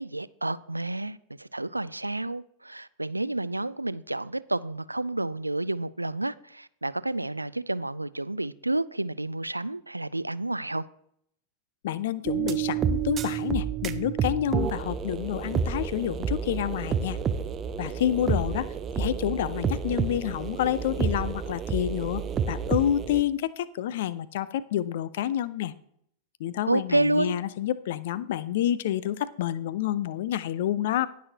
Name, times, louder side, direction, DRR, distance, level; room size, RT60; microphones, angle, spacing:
voice 1, 0.0-10.9 26.7-27.4, right 2 dB, 85° right, 0.3 m, -30 dB
voice 2, 11.8-17.2 17.8-25.7 26.4-31.1, left 11 dB, 55° left, 0.5 m, -29 dB
sound 1, 12.2-23.2, right 7 dB, 25° right, 0.6 m, -29 dB
18.5 x 6.2 x 2.8 m
figure-of-eight pair, 90°, 0 cm